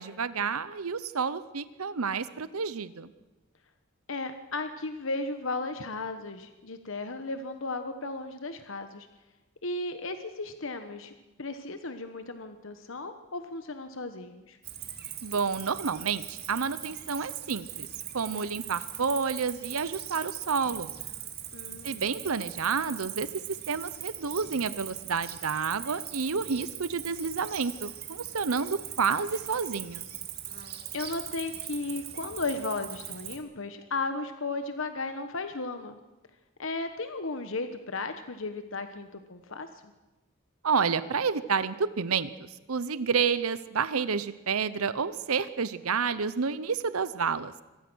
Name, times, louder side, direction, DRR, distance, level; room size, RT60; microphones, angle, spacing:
voice 1, 0.0-3.1 15.2-17.9 18.1-20.9 21.8-30.0 40.6-47.5, right 5 dB, 80° right, 15 dB, 0.8 m, -30 dB
voice 2, 4.1-9.1 9.6-11.1 11.4-14.6 21.5-22.0 30.9-36.0 36.6-39.9, left 3 dB, 65° left, 8 dB, 1.2 m, -35 dB
Cricket, 14.6-33.4, right 11 dB, 45° right, 2.4 m, -40 dB
25.0 x 18.5 x 6.3 m, 1.1 s
head